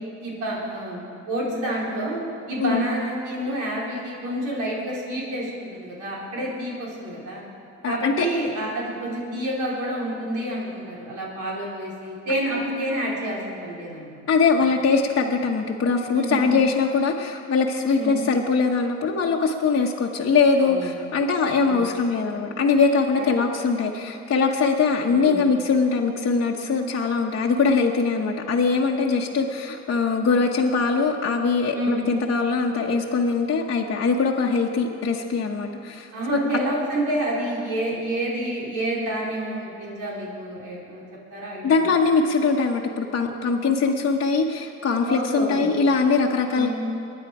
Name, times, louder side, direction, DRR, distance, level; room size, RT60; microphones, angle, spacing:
voice 1, 0.2-2.2 2.5-7.4 7.9-14.3 16.1-16.5 17.9-18.2 20.6-21.0 21.6-21.8 23.2-23.3 24.9-25.4 31.7-32.0 36.1-41.0 41.3-42.0 45.1-45.9 46.5-46.7, right 1 dB, 80° right, -5 dB, 4.4 m, -29 dB
voice 2, 7.8-8.3 14.3-36.4 41.6-46.7, left 4 dB, 45° left, -2 dB, 1.1 m, -22 dB
23.0 x 9.7 x 4.9 m, 2.7 s
cardioid pair, 90°, 30 cm